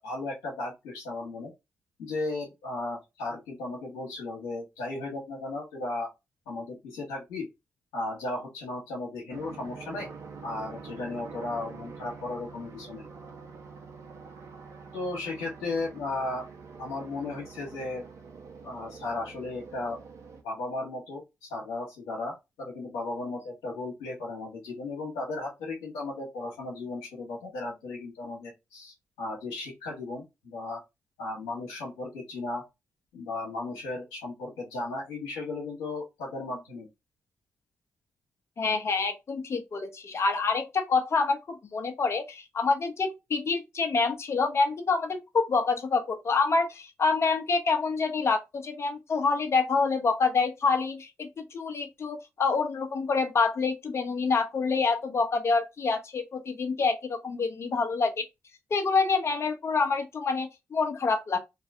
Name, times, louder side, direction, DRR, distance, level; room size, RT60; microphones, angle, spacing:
voice 1, 0.0-1.5 2.0-6.1 6.5-7.5 7.9-10.1 10.4-13.1 14.9-16.5 16.8-18.0 18.6-20.0 20.4-30.8 31.2-32.6 33.1-36.9, left 2 dB, 85° left, 1.2 m, -35 dB
sound 1, 9.3-20.4, right 5 dB, 65° right, 1.1 m, -45 dB
voice 2, 38.6-58.2 58.7-61.4, left 4 dB, 50° left, 0.9 m, -27 dB
3.0 x 2.6 x 2.6 m
supercardioid pair, 45°, 6 cm